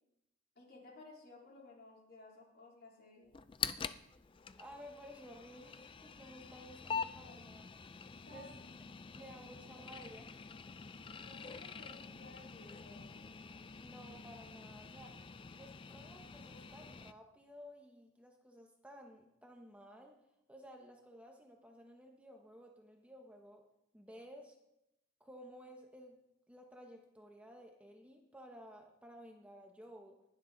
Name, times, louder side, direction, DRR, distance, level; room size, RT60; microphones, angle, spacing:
voice 1, 0.6-3.3 7.2-7.4 8.3-8.5 11.1-13.3, left 2 dB, 50° left, -3 dB, 3.7 m, -57 dB
sound 1, 3.3-17.1, left 6 dB, 25° left, 0.4 m, -46 dB
voice 2, 4.6-7.7 8.3-8.6 9.1-10.4 13.8-15.2 15.6-20.2 20.5-23.6 23.9-24.6 25.2-26.2 26.5-30.2, equal, 5° right, 2 dB, 0.9 m, -55 dB
20.0 x 8.2 x 3.9 m, 0.87 s
head